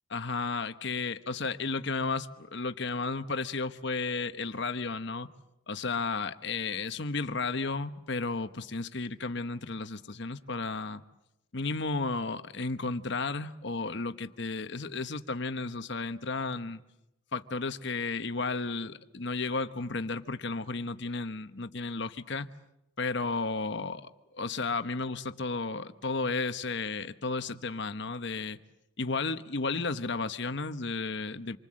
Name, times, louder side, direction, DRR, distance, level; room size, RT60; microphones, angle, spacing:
voice 1, 0.1-5.3 5.7-11.0 11.5-16.8 17.3-22.5 23.0-28.6 29.0-31.6, left 3 dB, 55° left, 10 dB, 1.1 m, -33 dB
27.0 x 24.0 x 7.6 m, 0.91 s
head